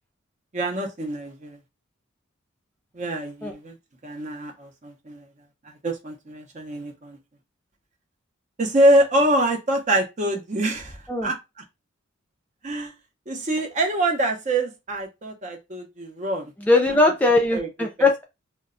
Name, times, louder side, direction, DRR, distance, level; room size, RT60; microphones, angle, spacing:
voice 1, 0.5-1.6 2.9-3.8 4.0-5.3 5.8-7.2 8.6-11.4 12.6-12.9 13.3-16.5 17.5-17.7 18.0-18.1, right 1 dB, 35° right, 0.6 m, -24 dB
voice 2, 16.6-18.2, left 2 dB, 10° left, 0.3 m, -20 dB
2.2 x 2.1 x 3.6 m
head